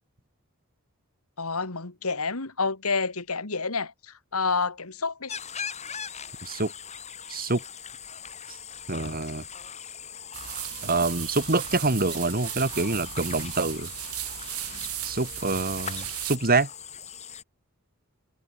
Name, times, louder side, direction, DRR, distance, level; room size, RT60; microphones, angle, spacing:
voice 1, 1.4-5.3, left 4 dB, 80° left, 2.6 m, -29 dB
sound 1, 5.3-17.4, left 7 dB, 30° left, 3.7 m, -40 dB
voice 2, 6.4-6.7 7.3-7.6 8.9-9.4 10.8-13.9 15.0-16.7, right 3 dB, 45° right, 2.5 m, -26 dB
sound 2, 10.3-16.4, right 14 dB, 90° right, 5.1 m, -36 dB
head